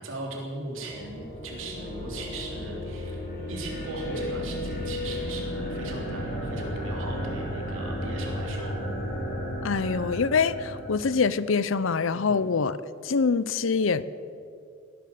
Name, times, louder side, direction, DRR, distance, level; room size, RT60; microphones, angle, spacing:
voice 1, 0.0-8.7 12.1-12.4, right 2 dB, 75° right, 3.5 m, -38 dB
sound 1, 0.8-11.3, equal, 50° left, 5.2 m, -33 dB
voice 2, 9.6-14.0, left 5 dB, 75° left, 0.6 m, -25 dB
17.0 x 11.5 x 7.1 m
head